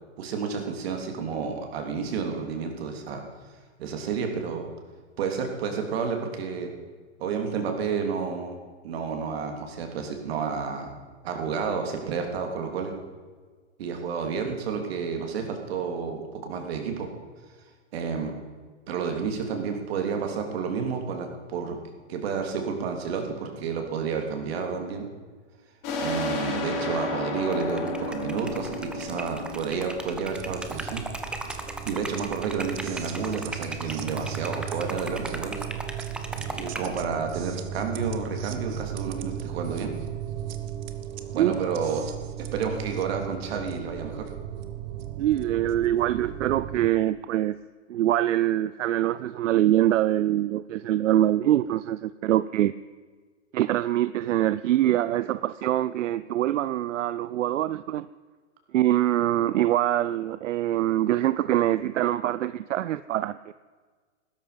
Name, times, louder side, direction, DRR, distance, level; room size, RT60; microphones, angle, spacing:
voice 1, 0.2-3.2 3.8-4.7 5.2-6.7 7.2-8.6 8.8-10.9 11.2-12.9 13.8-17.1 17.9-18.3 18.9-21.8 22.1-25.1 26.0-31.0 31.4-35.6 36.5-39.9 41.3-42.0 42.5-44.3, right 6 dB, 55° right, 4 dB, 3.3 m, -30 dB
sound 1, 25.8-31.2, left 2 dB, 35° left, 4.6 m, -32 dB
Liquid, 27.4-37.0, right 2 dB, 5° right, 0.7 m, -38 dB
sound 2, 30.3-46.9, right 9 dB, 40° right, 1.2 m, -36 dB
voice 2, 45.2-47.6 47.9-52.7 53.5-58.1 58.7-63.5, right 13 dB, 85° right, 16 dB, 0.6 m, -24 dB
15.5 x 13.0 x 5.2 m, 1.5 s
hypercardioid pair, 150°, 36 cm